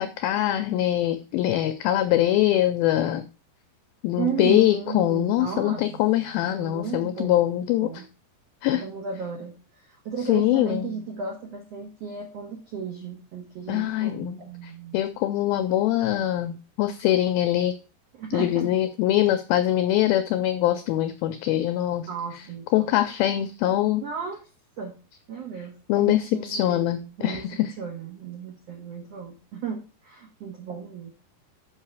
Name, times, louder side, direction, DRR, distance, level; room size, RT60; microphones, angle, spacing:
voice 1, 0.0-3.2 4.0-7.9 8.6-8.8 10.3-10.9 13.7-17.7 18.3-22.1 22.7-24.0 25.9-27.7, left 13 dB, 85° left, 9 dB, 2.1 m, -23 dB
voice 2, 4.2-8.1 8.7-15.0 16.0-16.1 18.1-18.6 22.1-22.9 24.0-24.5 24.8-25.0 25.3-27.4 27.8-31.1, right 6 dB, 85° right, 1 dB, 1.4 m, -35 dB
5.7 x 5.6 x 4.7 m, 0.33 s
omnidirectional pair, 4.8 m